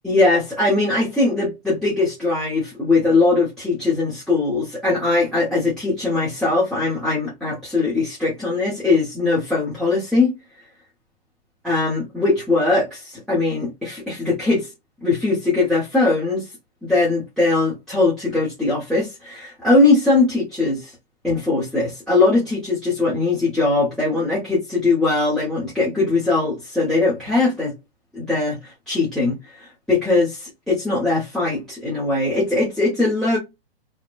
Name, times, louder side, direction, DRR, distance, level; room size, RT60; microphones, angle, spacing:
voice 1, 0.0-10.3 11.6-14.7 15.0-16.5 16.8-20.9 21.2-27.7 28.1-33.4, left 3 dB, ahead, 0.8 m, -20 dB
2.8 x 2.2 x 2.4 m
hypercardioid pair, 130°, 30 cm